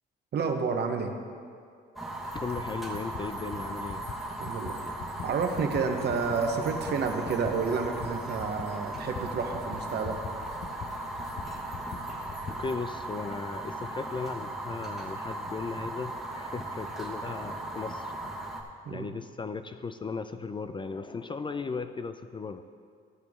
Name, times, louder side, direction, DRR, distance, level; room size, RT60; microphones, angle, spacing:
voice 1, 0.3-1.1 4.4-4.8 5.2-10.2 18.8-19.1, right 5 dB, 55° right, 4 dB, 1.1 m, -30 dB
Fire, 2.0-18.6, right 2 dB, ahead, 1.4 m, -37 dB
sound 1, 2.2-12.7, left 6 dB, 55° left, 0.8 m, -44 dB
voice 2, 2.3-4.0 12.5-18.5 18.9-22.6, left 4 dB, 25° left, 10 dB, 0.4 m, -36 dB
15.5 x 5.9 x 3.6 m, 2.2 s
cardioid pair, 90°, 20 cm